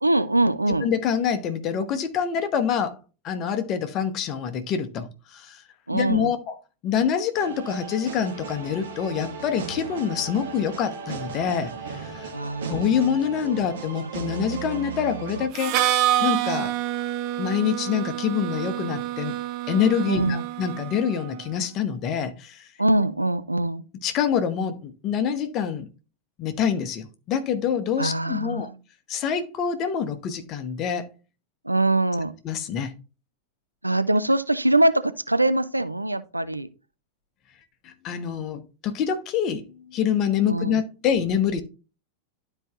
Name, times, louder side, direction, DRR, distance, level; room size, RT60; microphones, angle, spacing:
voice 1, 0.0-0.9 5.9-6.3 12.3-13.2 14.0-14.1 20.0-20.4 22.8-23.8 28.0-28.8 31.6-32.3 33.8-36.7 40.4-40.8, right 1 dB, 85° right, 12 dB, 0.5 m, -23 dB
voice 2, 0.8-2.9 3.2-5.6 5.9-6.5 6.8-12.3 12.7-15.9 16.2-16.7 17.4-19.3 19.7-22.6 24.0-25.9 26.4-28.7 29.1-31.1 32.4-32.9 37.8-39.7 39.9-41.6, left 8 dB, 35° left, 8 dB, 1.0 m, -26 dB
sound 1, 7.3-15.5, right 5 dB, 60° right, 1.2 m, -36 dB
Harmonica, 15.5-21.3, right 12 dB, 45° right, 0.7 m, -27 dB
12.0 x 4.5 x 2.4 m, 0.33 s
figure-of-eight pair, 90°, 0 cm